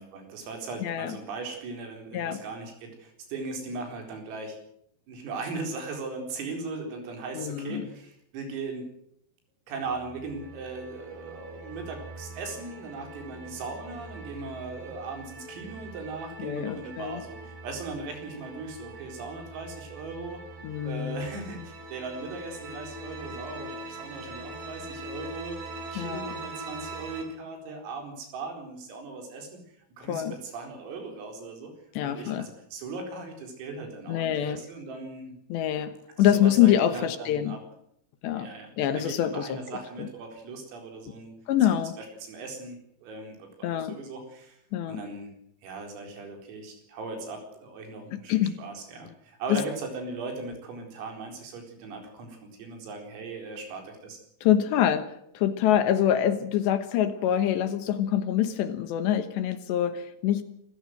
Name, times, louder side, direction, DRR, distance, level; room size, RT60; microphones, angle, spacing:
voice 1, 0.0-4.6 5.1-8.8 9.7-20.4 20.9-29.6 30.0-31.7 32.0-35.4 36.2-37.6 38.4-41.3 42.0-44.6 44.9-45.3 45.6-54.2, right 3 dB, 85° right, 3 dB, 7.1 m, -38 dB
voice 2, 0.8-1.1 2.1-2.4 7.4-7.9 16.4-17.2 20.6-21.3 26.0-26.3 30.1-30.3 31.9-32.5 34.1-34.6 35.5-37.6 38.2-38.5 38.8-39.6 40.0-40.1 41.5-41.9 43.6-44.0 44.7-45.0 48.1-48.6 49.5-49.6 54.4-60.4, left 11 dB, 70° left, 10 dB, 3.0 m, -25 dB
sound 1, 9.9-27.2, right 2 dB, 55° right, 5.4 m, -42 dB
26.5 x 15.0 x 7.8 m, 0.74 s
omnidirectional pair, 5.9 m